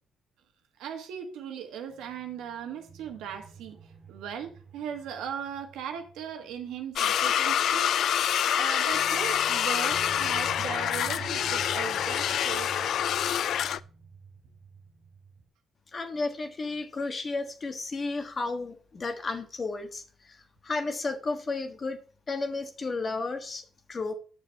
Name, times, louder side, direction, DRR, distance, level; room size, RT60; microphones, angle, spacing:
voice 1, 0.8-3.8 4.1-7.9 8.5-13.3, right 8 dB, 90° right, 1.5 m, -38 dB
sound 1, 1.9-7.3 7.6-7.7 8.9-15.5, right 6 dB, 50° right, 1.9 m, -47 dB
sound 2, 7.0-13.8, left 10 dB, 70° left, 0.3 m, -26 dB
voice 2, 15.9-22.0 22.3-24.1, left 3 dB, 35° left, 1.4 m, -33 dB
8.0 x 6.6 x 4.6 m
cardioid pair, 90°, 0 cm